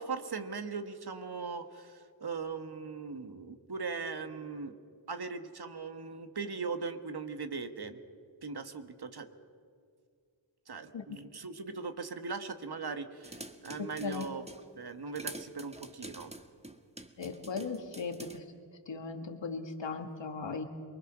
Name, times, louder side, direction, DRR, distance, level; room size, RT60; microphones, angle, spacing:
voice 1, 0.0-4.7 5.1-8.0 8.4-9.3 10.7-14.4 14.8-16.3, right 4 dB, 55° right, 8 dB, 1.8 m, -39 dB
sound 1, 13.2-14.7 15.1-18.4, right 1 dB, 15° right, 1.6 m, -47 dB
voice 2, 17.2-18.4 18.9-20.6, left 5 dB, 70° left, 5 dB, 2.2 m, -38 dB
27.5 x 20.5 x 6.3 m, 2.2 s
cardioid pair, 45°, 46 cm